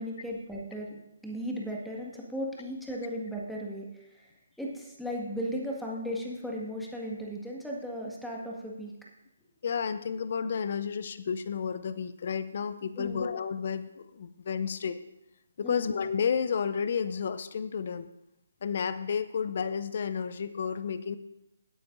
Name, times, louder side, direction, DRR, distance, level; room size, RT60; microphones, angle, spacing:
voice 1, 0.0-4.2 4.6-8.9 13.0-13.2 15.6-15.9, equal, ahead, -4 dB, 1.8 m, -36 dB
voice 2, 9.6-15.0 15.6-18.1 18.6-21.2, left 6 dB, 50° left, 13 dB, 0.6 m, -31 dB
16.5 x 9.0 x 2.6 m, 0.86 s
figure-of-eight pair, 145°, 0 cm